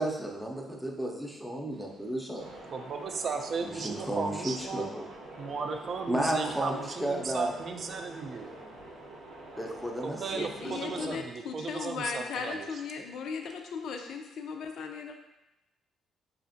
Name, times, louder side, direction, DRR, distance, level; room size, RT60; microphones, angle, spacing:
voice 1, 0.0-2.5 3.6-5.1 6.1-7.5 9.6-11.2, right 1 dB, 5° right, -1 dB, 0.5 m, -33 dB
sound 1, 2.4-11.0, right 1 dB, 85° right, 0.7 m, -46 dB
voice 2, 2.7-4.9 5.4-8.6 10.0-12.8, right 4 dB, 55° right, 5 dB, 0.4 m, -35 dB
voice 3, 10.3-15.1, left 5 dB, 75° left, 4 dB, 0.4 m, -37 dB
4.7 x 2.5 x 2.5 m, 0.97 s
cardioid pair, 90°, 0 cm